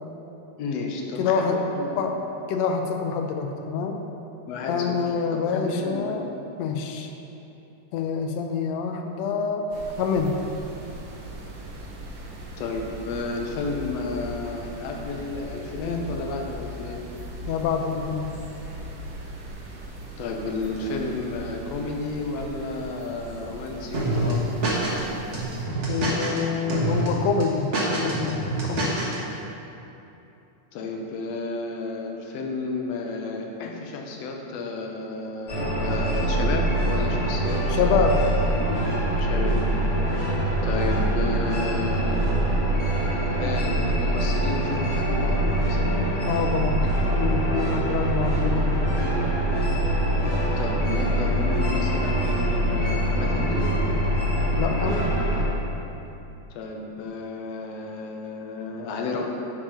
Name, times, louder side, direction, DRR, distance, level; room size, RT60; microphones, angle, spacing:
voice 1, 0.6-2.1 4.5-5.0 5.3-6.1 12.6-17.0 20.2-24.5 30.7-38.0 39.1-39.6 40.6-42.3 43.4-46.0 46.8-46.9 50.6-53.7 56.5-59.2, left 3 dB, 65° left, 1 dB, 1.8 m, -32 dB
voice 2, 1.2-1.7 2.0-2.2 2.5-4.0 4.7-6.3 6.6-7.1 7.9-9.7 10.0-10.4 17.5-18.3 25.9-28.9 37.7-38.2 46.3-46.9 47.1-48.9 54.6-55.0, left 6 dB, 85° left, 4 dB, 1.5 m, -26 dB
sound 1, 9.7-25.6, right 1 dB, 65° right, 1.2 m, -39 dB
sound 2, 23.9-25.0 25.3-26.4 26.7-27.1 27.4-29.2, right 2 dB, 45° right, 0.9 m, -26 dB
sound 3, 35.5-55.4, right 1 dB, 40° left, 2.4 m, -24 dB
8.6 x 5.3 x 5.8 m, 2.9 s
omnidirectional pair, 3.6 m